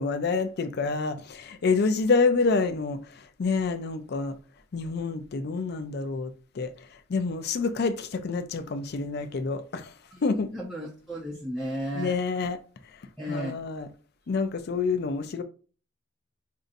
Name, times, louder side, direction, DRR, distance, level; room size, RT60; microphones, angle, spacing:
voice 1, 0.0-4.4 4.7-6.7 7.1-9.9 10.2-10.5 11.9-12.6 13.3-13.9 14.3-15.4, left 4 dB, 55° left, 0.4 m, -27 dB
voice 2, 10.1-12.2 13.2-13.5, equal, ahead, 0.5 m, -34 dB
5.1 x 2.6 x 2.6 m
head